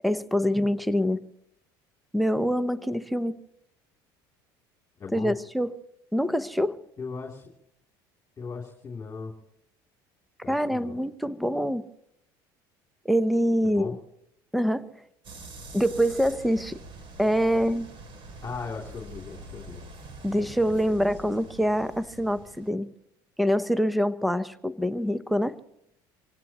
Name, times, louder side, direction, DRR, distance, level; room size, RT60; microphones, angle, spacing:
voice 1, 0.0-1.2 2.1-3.3 5.1-5.7 6.1-6.8 10.5-11.9 13.0-13.9 14.5-14.9 15.7-16.8 17.2-17.9 20.2-22.9 23.4-25.6, equal, ahead, 14 dB, 0.8 m, -25 dB
voice 2, 5.0-5.3 7.0-7.4 8.4-9.3 10.4-11.0 13.6-13.9 18.4-19.8 20.9-21.1, left 5 dB, 25° left, 2 dB, 3.0 m, -37 dB
sound 1, 15.2-22.7, right 2 dB, 50° right, 2.9 m, -45 dB
25.5 x 17.0 x 3.0 m, 0.76 s
supercardioid pair, 90°, 11 cm